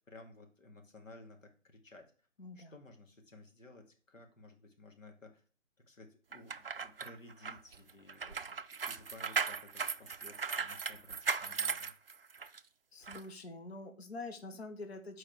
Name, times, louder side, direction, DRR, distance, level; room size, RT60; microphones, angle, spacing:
voice 1, 0.1-2.1 2.5-5.4 5.9-8.6 8.8-11.9, left 2 dB, 75° left, 4 dB, 2.4 m, -56 dB
voice 2, 2.4-2.7 12.9-15.2, left 2 dB, 50° left, 7 dB, 1.1 m, -46 dB
sound 1, 6.3-12.6 13.1-13.2, right 5 dB, 50° right, 0.4 m, -37 dB
7.1 x 4.7 x 4.6 m, 0.40 s
figure-of-eight pair, 160°, 39 cm